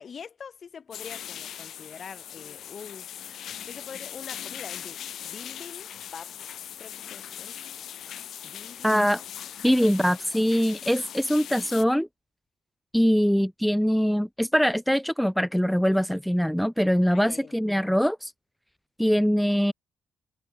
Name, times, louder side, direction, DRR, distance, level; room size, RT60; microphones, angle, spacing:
voice 1, 0.0-3.1 3.6-5.0 5.2-6.3 6.8-7.6 8.4-8.9 9.7-9.9 17.1-17.6, left 6 dB, 50° left, 6.0 m, -44 dB
sound 1, 0.9-11.8, left 10 dB, 65° left, 2.7 m, -40 dB
voice 2, 8.8-9.2 9.6-12.1 12.9-18.3 19.0-19.7, equal, ahead, 0.4 m, -23 dB
cardioid pair, 90°, 0 cm